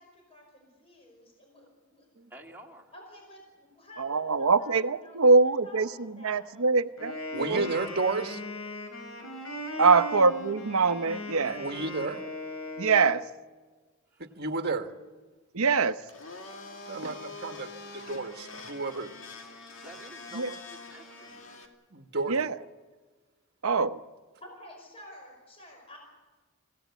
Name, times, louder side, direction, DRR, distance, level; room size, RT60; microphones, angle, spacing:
voice 1, 0.0-2.1 2.9-6.7 24.4-26.0, left 1 dB, 30° left, 1 dB, 5.3 m, -50 dB
voice 2, 2.3-2.9 9.7-10.0 14.1-14.3 19.8-21.6, right 2 dB, 10° right, -1 dB, 2.5 m, -49 dB
voice 3, 4.0-5.9 6.2-7.7 9.8-11.6 12.8-13.2 15.5-16.0 17.0-17.1 20.3-20.5 22.3-22.5 23.6-24.0, right 4 dB, 85° right, 11 dB, 0.9 m, -23 dB
Wind instrument woodwind instrument, 7.0-13.2, left 1 dB, 80° left, 5.5 m, -39 dB
voice 4, 7.3-8.4 11.4-12.2 14.2-14.9 16.9-19.1 21.9-22.5, right 3 dB, 50° right, 6 dB, 1.5 m, -32 dB
Domestic sounds home sounds, 16.1-21.7, left 3 dB, 65° left, 2.5 m, -45 dB
26.5 x 17.0 x 8.3 m, 1.3 s
head